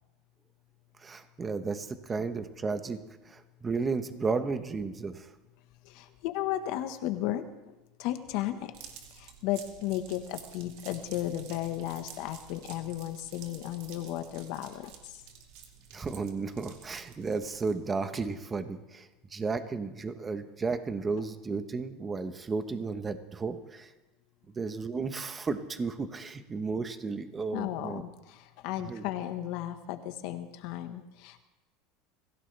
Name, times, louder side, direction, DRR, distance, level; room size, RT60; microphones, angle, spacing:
voice 1, 1.0-5.3 15.9-23.9 24.5-28.0 28.9-29.0, right 4 dB, 20° right, 9 dB, 1.1 m, -33 dB
voice 2, 5.8-8.7 9.1-15.2 27.5-31.4, left 13 dB, 65° left, 8 dB, 1.3 m, -35 dB
sound 1, 8.7-17.9, right 8 dB, 70° right, 2.4 m, -51 dB
25.0 x 16.0 x 3.4 m, 1.1 s
supercardioid pair, 140°, 0 cm